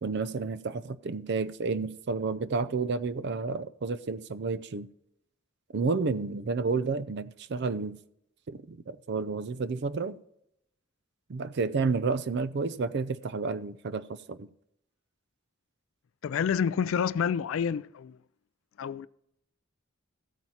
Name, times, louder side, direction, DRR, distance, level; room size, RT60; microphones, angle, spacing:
voice 1, 0.0-4.9 5.7-8.0 8.5-10.2 11.3-14.5, right 4 dB, 55° right, 0.4 m, -31 dB
voice 2, 16.2-18.2 18.8-19.1, left 7 dB, 80° left, 0.3 m, -28 dB
15.0 x 8.8 x 2.8 m
head